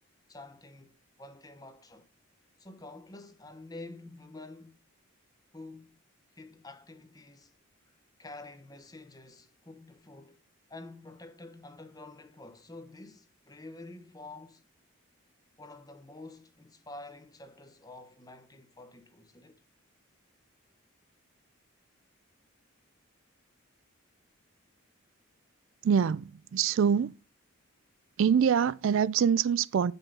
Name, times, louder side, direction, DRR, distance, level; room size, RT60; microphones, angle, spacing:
voice 1, 0.3-2.1 2.6-4.8 5.5-6.0 6.3-7.5 7.9-10.4 10.7-14.6 15.6-19.6, left 2 dB, 15° left, 0.8 m, -48 dB
voice 2, 25.8-27.1 28.2-29.9, right 7 dB, 60° right, 0.3 m, -25 dB
8.7 x 5.5 x 5.3 m
head